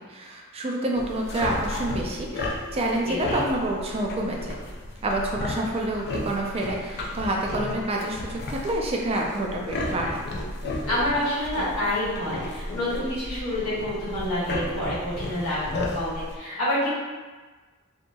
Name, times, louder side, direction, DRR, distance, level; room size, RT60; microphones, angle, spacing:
voice 1, 0.1-4.6 5.0-10.2, right 1 dB, 30° right, 0 dB, 0.3 m, -28 dB
sound 1, 0.9-16.4, left 2 dB, 50° left, 0.4 m, -33 dB
voice 2, 3.0-3.4 10.8-16.9, left 1 dB, 80° left, -9 dB, 1.3 m, -28 dB
2.7 x 2.7 x 2.2 m, 1.3 s
head